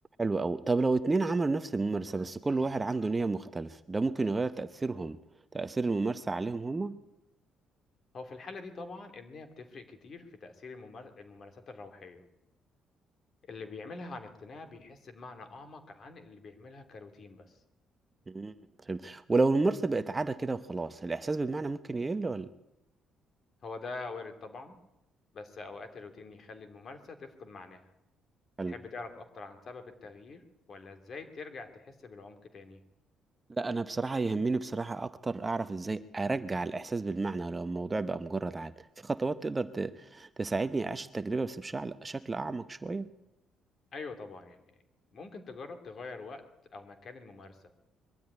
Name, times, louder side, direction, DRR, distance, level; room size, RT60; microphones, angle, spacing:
voice 1, 0.2-5.2 5.5-7.0 18.3-18.5 18.9-22.5 28.6-28.7 33.6-38.7 39.0-43.1, right 3 dB, 20° right, 0.7 m, -31 dB
voice 2, 8.1-12.2 13.4-17.6 23.6-24.8 25.3-27.9 28.7-32.8 43.9-44.8 45.1-47.6, left 3 dB, 45° left, 2.8 m, -45 dB
21.5 x 13.0 x 9.7 m
cardioid pair, 115°, 0 cm